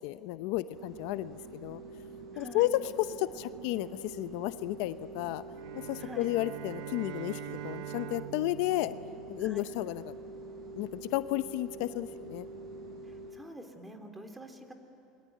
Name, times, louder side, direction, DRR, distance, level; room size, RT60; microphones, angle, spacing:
voice 1, 0.0-1.8 2.4-2.9 3.2-5.4 5.9-8.9 9.3-10.1 10.7-12.5, left 16 dB, 70° left, 13 dB, 0.7 m, -33 dB
sound 1, 0.7-13.4, right 2 dB, 40° right, 5.6 m, -46 dB
voice 2, 2.3-2.7 6.0-6.3 9.4-9.6 13.0-14.7, right 1 dB, 10° right, 6 dB, 3.2 m, -47 dB
sound 2, 5.5-10.0, right 14 dB, 65° right, 0.9 m, -44 dB
28.5 x 22.0 x 9.4 m, 2.7 s
supercardioid pair, 115°, 0 cm